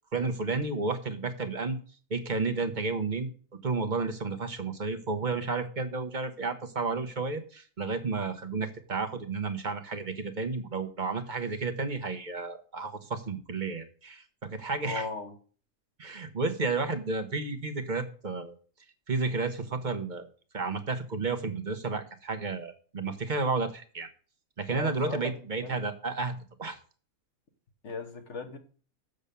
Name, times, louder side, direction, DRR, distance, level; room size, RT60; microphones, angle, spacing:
voice 1, 0.1-1.8 2.1-3.3 3.6-15.0 16.0-18.6 19.1-20.3 20.5-24.1 24.6-26.8, right 3 dB, 35° right, 1.1 m, -32 dB
voice 2, 14.8-15.3 24.7-25.3 25.6-25.8 27.8-28.6, left 3 dB, 55° left, 1.6 m, -37 dB
7.1 x 6.6 x 6.8 m
omnidirectional pair, 1.5 m